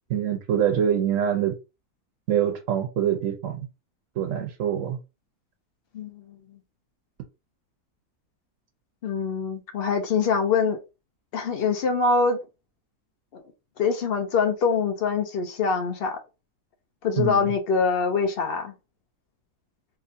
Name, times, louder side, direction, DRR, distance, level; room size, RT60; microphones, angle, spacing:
voice 1, 0.1-1.5 2.3-3.6 4.2-5.0 17.2-17.5, right 9 dB, 65° right, 0.9 m, -24 dB
voice 2, 5.9-6.4 9.0-10.8 11.3-12.4 13.3-13.4 13.8-16.2 17.0-18.7, left 5 dB, 90° left, 0.5 m, -24 dB
3.8 x 2.7 x 2.6 m
omnidirectional pair, 1.7 m